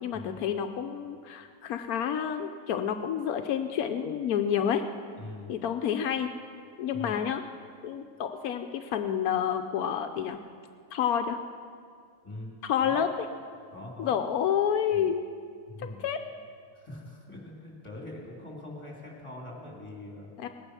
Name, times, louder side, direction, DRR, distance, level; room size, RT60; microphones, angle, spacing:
voice 1, 0.0-4.8 5.5-6.3 6.8-7.4 7.8-10.4 10.9-11.4 12.6-13.1 14.0-15.2 16.0-16.2 20.4-20.5, left 8 dB, 80° left, 7 dB, 1.1 m, -29 dB
voice 2, 5.2-5.5 6.9-7.2 12.2-12.5 12.8-13.0 13.7-14.2 14.9-15.1 15.7-16.0 16.7-20.3, left 1 dB, 20° left, -2 dB, 3.3 m, -42 dB
19.5 x 9.8 x 6.1 m, 2.2 s
omnidirectional pair, 1.6 m